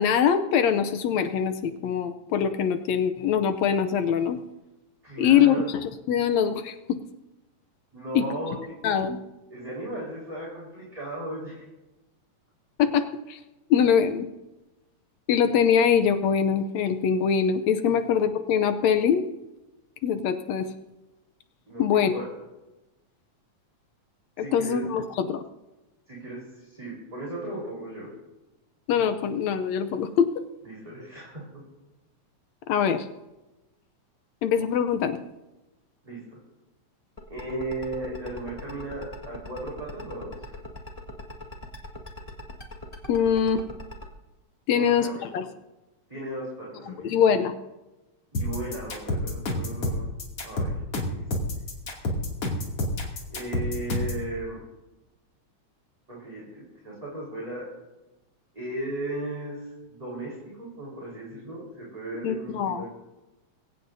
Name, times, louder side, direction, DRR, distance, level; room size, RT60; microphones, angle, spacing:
voice 1, 0.0-4.4 5.2-7.0 8.2-8.3 8.8-9.2 12.8-13.4 13.7-14.3 15.3-19.3 20.0-20.7 21.8-22.1 24.4-25.4 28.9-30.3 32.7-33.1 34.4-35.2 43.1-43.6 44.7-45.5 46.9-47.5 62.2-62.8, left 7 dB, 75° left, 9 dB, 1.9 m, -23 dB
voice 2, 5.0-5.7 7.9-8.6 9.5-11.6 13.8-13.9 17.9-18.0 21.7-22.3 24.4-24.9 26.1-28.1 30.6-31.4 36.0-36.2 37.3-40.5 44.7-45.3 46.1-47.1 48.3-50.1 50.4-50.8 51.1-51.2 53.3-54.6 56.1-57.7 58.5-62.9, right 1 dB, 10° right, -5 dB, 4.3 m, -36 dB
sound 1, 37.2-44.1, left 2 dB, 20° left, 1.2 m, -40 dB
sound 2, 48.3-54.2, left 1 dB, 50° left, 3.5 m, -28 dB
23.5 x 16.5 x 2.7 m, 1.0 s
omnidirectional pair, 3.4 m